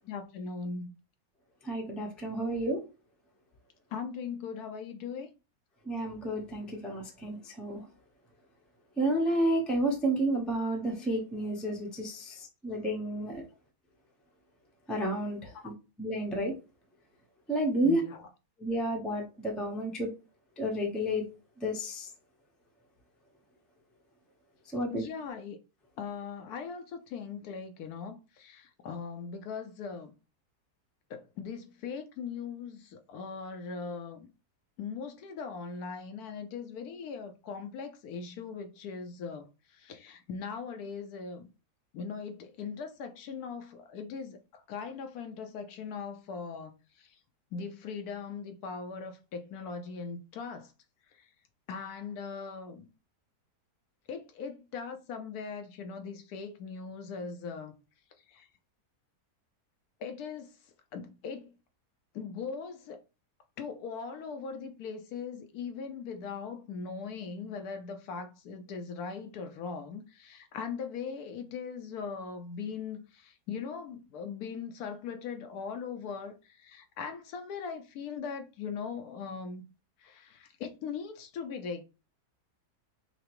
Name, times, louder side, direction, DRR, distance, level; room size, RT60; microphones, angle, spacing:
voice 1, 0.0-0.9 3.9-5.3 17.8-18.3 24.9-25.6 26.0-30.1 31.1-34.3 34.8-39.5 39.7-41.5 41.9-46.7 47.0-47.2 47.5-50.7 51.1-51.3 51.7-52.9 54.1-57.7 58.3-58.5 60.0-60.5 60.9-61.5 62.1-63.0 63.6-79.6 80.0-81.8, left 5 dB, 75° left, 1.1 m, -40 dB
voice 2, 1.6-2.8 5.9-7.8 9.0-13.4 14.9-15.7 16.0-16.5 17.5-18.0 18.6-20.1 20.6-21.2 21.6-22.1 24.7-25.0, right 1 dB, ahead, 0.5 m, -31 dB
5.7 x 2.0 x 3.0 m
omnidirectional pair, 1.7 m